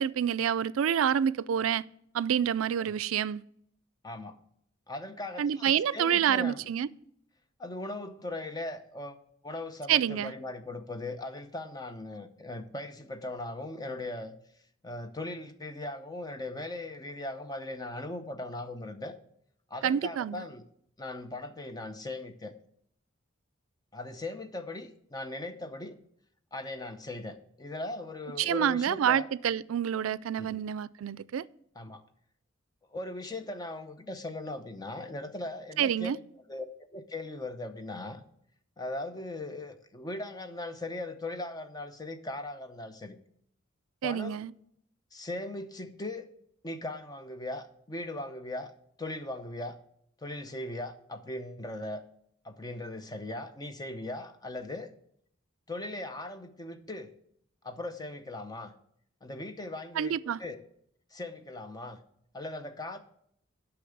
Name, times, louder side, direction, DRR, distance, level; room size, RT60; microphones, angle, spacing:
voice 1, 0.0-1.8 2.1-3.4 5.4-6.9 9.9-10.3 19.8-20.4 28.4-31.4 35.8-36.2 44.0-44.5 60.0-60.4, right 9 dB, 90° right, 0.4 m, -28 dB
voice 2, 4.0-4.4 4.9-6.7 7.6-9.2 9.4-14.4 14.8-19.1 19.7-20.6 21.0-22.5 23.9-25.9 26.5-29.3 30.4-30.6 31.8-32.0 32.9-36.1 36.5-36.7 36.9-38.2 38.8-43.2 44.0-44.4 45.1-46.3 46.6-48.7 49.0-49.8 50.2-52.0 52.4-54.9 55.7-57.1 57.6-58.7 59.2-60.1 60.4-60.6 61.1-62.0 62.3-63.0, left 2 dB, 20° left, 0.7 m, -39 dB
8.4 x 5.9 x 7.9 m
head